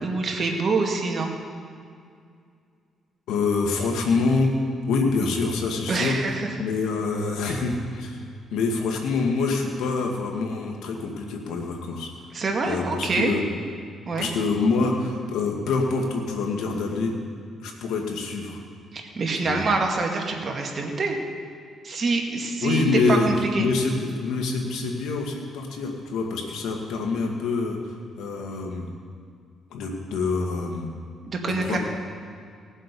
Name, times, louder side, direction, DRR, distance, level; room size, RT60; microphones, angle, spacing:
voice 1, 0.0-1.3 5.9-6.3 7.5-7.6 12.3-13.3 14.1-14.3 18.9-21.2 21.8-22.8 23.1-23.7 31.3-31.8, right 3 dB, 45° right, 1 dB, 2.0 m, -25 dB
voice 2, 3.3-4.5 4.9-6.1 6.6-8.2 8.5-12.1 12.7-13.4 14.2-17.1 17.6-18.6 19.4-19.6 22.6-23.3 23.6-27.8 28.2-28.9 29.7-30.9 31.5-31.8, left 4 dB, 85° left, 2 dB, 1.9 m, -26 dB
18.5 x 7.5 x 5.3 m, 2.2 s
cardioid pair, 90°, 0 cm